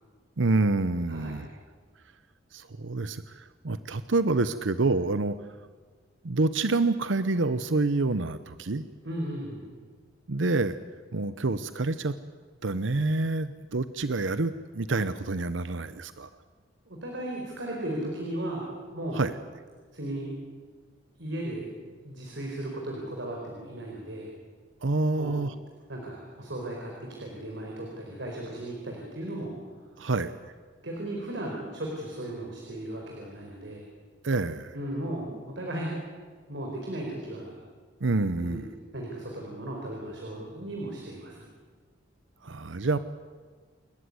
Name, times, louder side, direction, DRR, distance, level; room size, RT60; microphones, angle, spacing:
voice 1, 0.4-1.5 2.5-5.4 6.2-8.8 10.3-10.8 11.1-12.1 12.6-16.3 19.1-19.3 24.8-25.5 30.0-30.4 34.2-34.7 38.0-38.7 42.4-43.0, right 3 dB, 85° right, 13 dB, 0.8 m, -27 dB
voice 2, 1.1-1.5 9.0-9.7 16.9-18.6 18.9-19.2 19.9-20.3 21.2-21.7 22.0-24.3 25.1-25.3 25.9-29.6 30.8-33.8 34.7-35.9 36.5-37.6 38.4-38.6 38.9-41.5, right 1 dB, 70° right, 0 dB, 4.6 m, -36 dB
28.5 x 14.5 x 9.6 m, 1.5 s
head